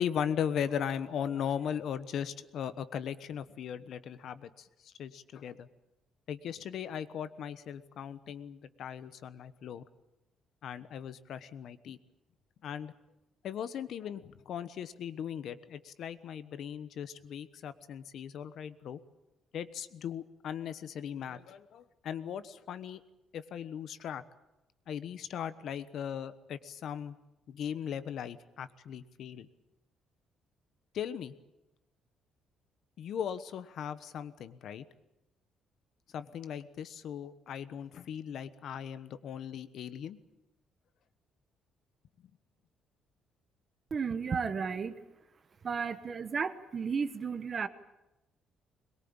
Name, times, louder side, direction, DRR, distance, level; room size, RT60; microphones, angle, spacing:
voice 1, 0.0-5.7 6.3-9.8 10.6-12.0 12.6-12.9 13.4-19.0 19.5-23.0 23.3-24.2 24.9-27.1 27.5-29.5 30.9-31.3 33.0-34.8 36.1-40.2, left 8 dB, 55° left, 13 dB, 1.2 m, -38 dB
voice 2, 43.9-44.9 45.6-47.7, right 5 dB, 30° right, 12 dB, 1.2 m, -33 dB
22.5 x 22.0 x 8.9 m, 0.93 s
cardioid pair, 165°, 0 cm